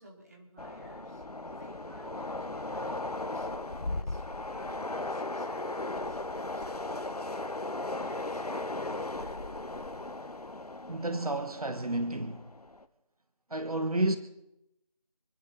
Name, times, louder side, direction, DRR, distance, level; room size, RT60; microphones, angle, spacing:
voice 1, 0.0-4.2 4.5-9.6, right 1 dB, 25° right, 3.0 m, -53 dB
Train, 0.6-12.8, left 2 dB, 85° left, 1.4 m, -37 dB
voice 2, 10.9-12.4 13.5-14.2, right 2 dB, 70° right, 1.3 m, -30 dB
26.5 x 11.5 x 4.1 m
figure-of-eight pair, 175°, 19 cm